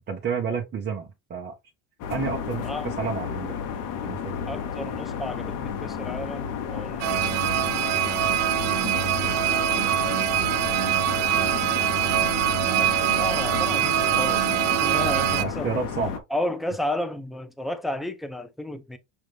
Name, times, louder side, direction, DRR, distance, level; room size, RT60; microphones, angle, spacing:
voice 1, 0.1-1.6 2.1-3.6 4.0-4.4 15.4-16.2, right 5 dB, 30° right, 0.9 m, -30 dB
sound 1, 2.0-16.2, left 7 dB, 65° left, 0.9 m, -32 dB
voice 2, 4.5-7.1 9.3-9.9 12.7-15.8 16.3-19.0, left 1 dB, ahead, 0.4 m, -33 dB
sound 2, 7.0-15.4, right 12 dB, 75° right, 0.7 m, -24 dB
6.4 x 2.4 x 3.4 m
cardioid pair, 130°, 35 cm